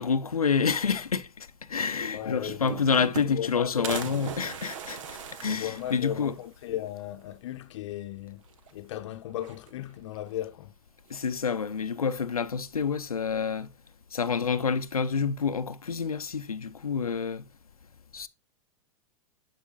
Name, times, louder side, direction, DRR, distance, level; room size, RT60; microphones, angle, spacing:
voice 1, 0.0-6.4 11.1-13.7 14.1-17.4 18.1-18.3, left 6 dB, 90° left, 0.6 m, -28 dB
sound 1, 1.9-2.0 2.2-3.5 3.8-6.4 6.9-7.0 7.2-7.3 8.5-8.9 9.3-10.0 11.1-11.7, right 8 dB, 60° right, 1.1 m, -40 dB
voice 2, 2.1-4.0 5.5-8.4 8.7-10.7, left 12 dB, 55° left, 0.8 m, -36 dB
11.5 x 5.0 x 2.3 m
figure-of-eight pair, 100°, 18 cm